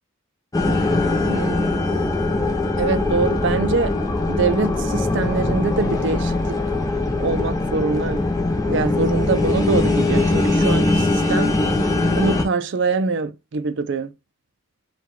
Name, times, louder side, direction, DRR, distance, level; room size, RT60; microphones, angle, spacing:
sound 1, 0.5-12.5, left 2 dB, 15° left, 0.6 m, -21 dB
voice 1, 1.3-1.8 2.8-4.0 4.3-6.6 7.2-8.2 8.7-11.6 12.1-14.1, right 4 dB, 55° right, 0.4 m, -24 dB
4.5 x 2.3 x 3.7 m
head